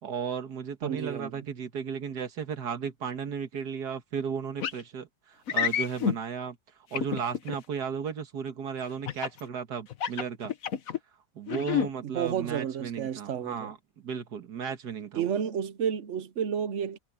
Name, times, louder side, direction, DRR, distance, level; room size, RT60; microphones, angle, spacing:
voice 1, 0.0-6.6 6.9-10.5 11.4-15.3, right 7 dB, 80° right, 2.1 m, -35 dB
voice 2, 0.8-1.5 11.5-13.7 15.1-17.0, right 8 dB, 55° right, 1.1 m, -31 dB
sound 1, 4.6-4.8 5.5-6.2 6.9-7.6 9.1-9.4 9.9-11.0 11.5-11.9, left 7 dB, 60° left, 1.4 m, -28 dB
omnidirectional pair, 1.7 m